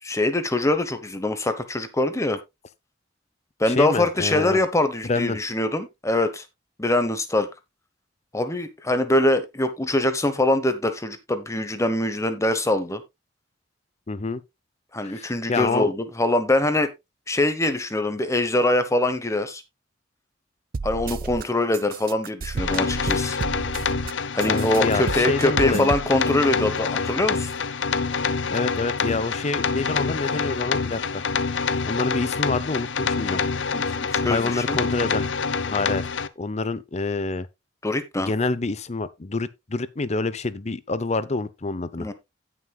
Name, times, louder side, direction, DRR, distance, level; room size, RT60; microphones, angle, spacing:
voice 1, 0.0-2.4 3.6-6.4 6.8-7.5 8.3-13.0 14.9-16.9 17.3-19.6 20.8-23.4 24.3-27.5 33.7-34.8 37.8-38.3 42.0-42.1, left 1 dB, 15° left, 1.0 m, -23 dB
voice 2, 3.7-4.6 5.0-5.4 14.1-14.4 15.0-15.9 24.4-25.9 28.5-31.2 31.8-33.4 34.3-35.3 35.7-36.1 36.4-37.5 38.2-42.1, left 3 dB, 40° left, 0.7 m, -27 dB
sound 1, 20.7-21.4 21.7-24.1 24.4-26.1, right 4 dB, 50° right, 0.4 m, -31 dB
sound 2, 22.6-36.3, left 5 dB, 80° left, 0.7 m, -26 dB
17.0 x 6.2 x 2.3 m
head